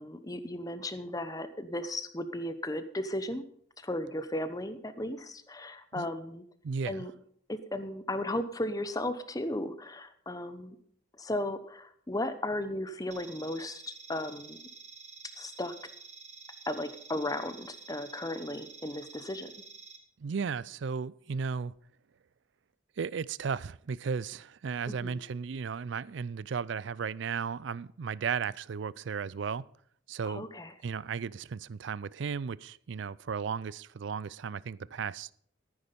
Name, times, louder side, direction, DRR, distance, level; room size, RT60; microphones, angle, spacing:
voice 1, 0.0-3.4 3.8-6.4 6.9-7.1 7.5-10.8 11.2-14.6 15.3-15.7 16.7-19.5 24.9-25.2 30.2-30.7, left 1 dB, 20° left, 0.9 m, -35 dB
voice 2, 6.6-7.1 20.2-21.7 23.0-29.7 30.1-30.5 30.8-35.3, right 6 dB, 65° right, 0.4 m, -35 dB
sound 1, 13.1-20.0, right 4 dB, 35° right, 3.0 m, -49 dB
14.5 x 9.6 x 5.3 m
head